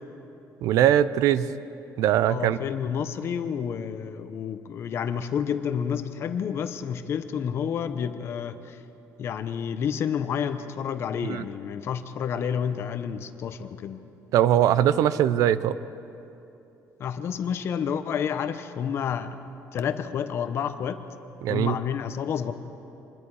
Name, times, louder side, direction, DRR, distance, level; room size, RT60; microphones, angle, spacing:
voice 1, 0.6-1.5 2.0-2.6 11.3-11.4 14.3-15.8 21.4-21.7, right 11 dB, 70° right, 15 dB, 0.6 m, -21 dB
voice 2, 2.3-8.8 9.2-14.0 17.0-19.4 19.7-21.0 21.5-22.5, left 7 dB, 45° left, 10 dB, 0.9 m, -29 dB
26.5 x 21.0 x 4.8 m, 2.9 s
cardioid pair, 165°, 6 cm